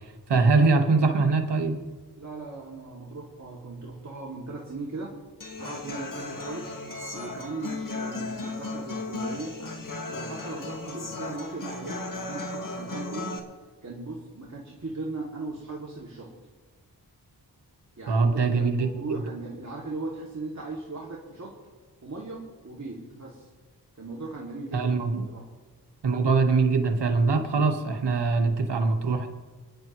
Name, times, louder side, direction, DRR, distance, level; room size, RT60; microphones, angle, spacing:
voice 1, 0.3-1.8 18.1-18.9 19.1-19.2 24.7-25.3 26.0-29.3, right 4 dB, 90° right, 4 dB, 1.4 m, -22 dB
voice 2, 2.2-5.2 5.5-6.7 7.1-9.6 10.1-13.4 13.8-16.3 18.0-21.6 22.0-23.5 24.0-24.9 25.3-25.4, right 3 dB, 45° right, -4 dB, 2.5 m, -38 dB
Human voice / Acoustic guitar, 5.4-13.4, left 2 dB, 50° left, 1.8 m, -36 dB
sound 1, 6.8-8.4 8.8-8.9, right 3 dB, 30° left, 2.6 m, -50 dB
28.0 x 10.5 x 3.1 m, 1.4 s
cardioid pair, 45°, 40 cm